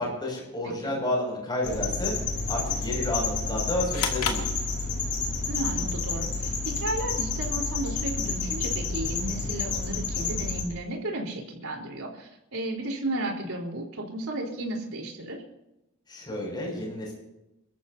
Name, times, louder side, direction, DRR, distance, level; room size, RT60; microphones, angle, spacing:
voice 1, 0.0-2.1 2.5-4.5 16.1-17.1, left 1 dB, 20° left, -2 dB, 6.5 m, -30 dB
voice 2, 0.6-0.9 5.5-15.4, right 1 dB, 75° right, 0 dB, 4.1 m, -34 dB
sound 1, 1.6-10.6, left 4 dB, 55° left, 4.6 m, -30 dB
sound 2, 3.9-5.3, left 6 dB, 85° left, 2.4 m, -32 dB
29.5 x 13.5 x 2.8 m, 0.92 s
head